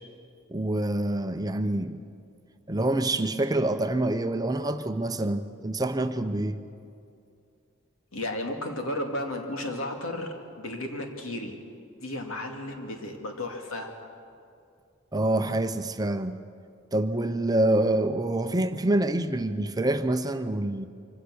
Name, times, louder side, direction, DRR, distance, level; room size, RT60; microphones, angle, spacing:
voice 1, 0.5-2.0 2.7-6.6 15.1-16.3 16.9-20.9, right 1 dB, 20° right, 9 dB, 0.7 m, -26 dB
voice 2, 8.1-11.5 12.0-13.9, left 1 dB, 85° left, 3 dB, 2.4 m, -33 dB
24.5 x 16.5 x 6.3 m, 2.4 s
head